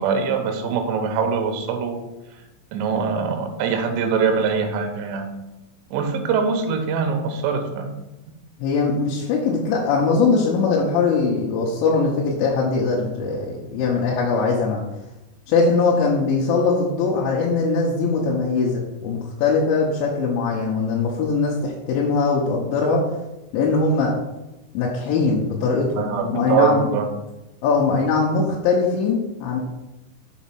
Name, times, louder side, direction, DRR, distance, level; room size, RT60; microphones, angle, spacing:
voice 1, 0.0-2.0 2.7-5.3 5.9-7.9 9.5-9.7 26.0-27.1, right 5 dB, 75° right, 5 dB, 2.8 m, -23 dB
voice 2, 8.6-14.8 15.5-23.0 23.5-24.1 24.7-26.9 27.6-29.6, left 4 dB, 75° left, -4 dB, 3.1 m, -21 dB
7.2 x 4.3 x 5.9 m, 0.97 s
omnidirectional pair, 5.6 m